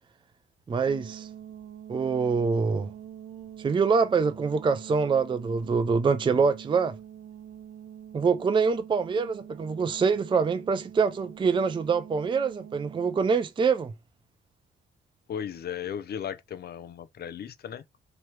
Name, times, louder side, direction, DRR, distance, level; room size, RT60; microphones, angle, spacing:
voice 1, 0.7-1.3 1.9-2.9 3.6-7.0 8.1-13.9, right 5 dB, 25° right, 0.4 m, -25 dB
sound 1, 0.9-13.2, right 9 dB, 80° right, 0.8 m, -45 dB
voice 2, 15.3-18.0, left 8 dB, 55° left, 0.6 m, -36 dB
3.0 x 3.0 x 4.5 m
cardioid pair, 90°, 20 cm